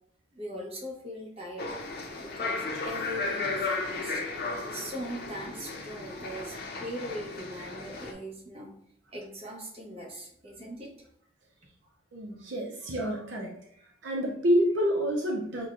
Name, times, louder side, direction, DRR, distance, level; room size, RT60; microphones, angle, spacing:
voice 1, 0.3-1.7 2.2-4.2 4.7-8.7 9.1-10.9, equal, 30° right, -2 dB, 0.9 m, -40 dB
sound 1, 1.6-8.1, left 3 dB, 55° left, 0.6 m, -35 dB
voice 2, 12.1-13.5 13.8-15.7, equal, 65° right, -1 dB, 0.6 m, -28 dB
5.5 x 2.2 x 2.5 m, 0.70 s
head